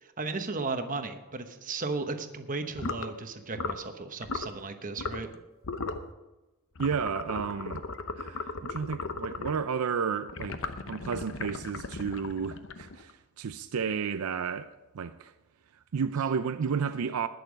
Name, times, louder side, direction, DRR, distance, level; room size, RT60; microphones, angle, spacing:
voice 1, 0.0-5.3, right 3 dB, 35° right, 1.0 m, -35 dB
sound 1, 2.7-3.1 3.5-3.9 4.2-4.5 5.0-5.3 5.6-6.1 6.8-9.6 10.3-13.1, left 3 dB, 60° left, 0.8 m, -36 dB
voice 2, 6.8-7.8 8.1-15.3 15.9-17.3, right 6 dB, 75° right, 0.5 m, -32 dB
19.5 x 6.8 x 5.1 m
head